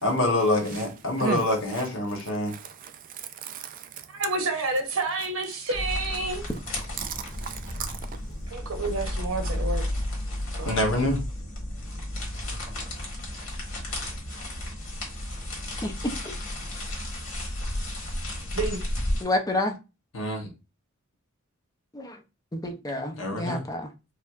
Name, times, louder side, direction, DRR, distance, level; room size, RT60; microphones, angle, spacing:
voice 1, 0.0-2.6 10.6-11.2 20.1-20.5 23.1-23.6, left 1 dB, 65° left, 1.1 m, -26 dB
voice 2, 2.5-3.9 7.0-7.9, right 5 dB, 40° right, 0.3 m, -34 dB
voice 3, 4.1-6.4 8.5-9.8 10.6-10.7 18.5-18.8, right 3 dB, 80° right, 0.9 m, -29 dB
sound 1, 5.7-19.2, left 1 dB, 85° left, 1.3 m, -33 dB
voice 4, 19.2-19.7 21.9-22.2 22.5-23.9, left 1 dB, 15° left, 0.5 m, -29 dB
4.3 x 2.1 x 2.4 m
head